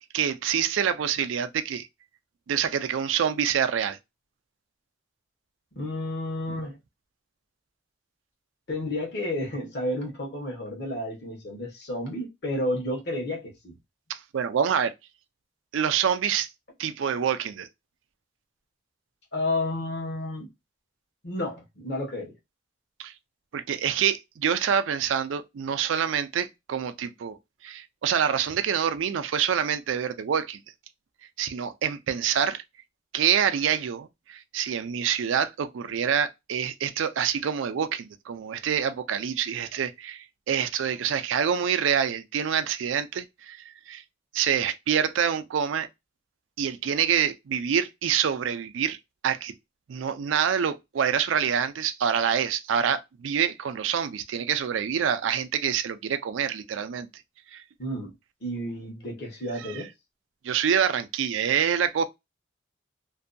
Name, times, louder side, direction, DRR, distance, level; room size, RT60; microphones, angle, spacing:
voice 1, 0.1-1.9 2.5-4.0 14.1-14.9 15.7-16.5 16.8-17.7 23.0-23.1 23.5-30.6 31.4-32.6 33.1-44.0 44.3-45.9 46.6-49.0 49.2-49.5 49.9-57.1 57.5-57.6 59.6-59.8 60.4-62.0, right 8 dB, 85° right, 0.4 m, -26 dB
voice 2, 5.8-6.8 8.7-13.8 19.3-20.5 21.2-22.3 57.8-58.1 58.4-59.9, left 1 dB, 60° left, 1.0 m, -31 dB
2.6 x 2.2 x 2.5 m
head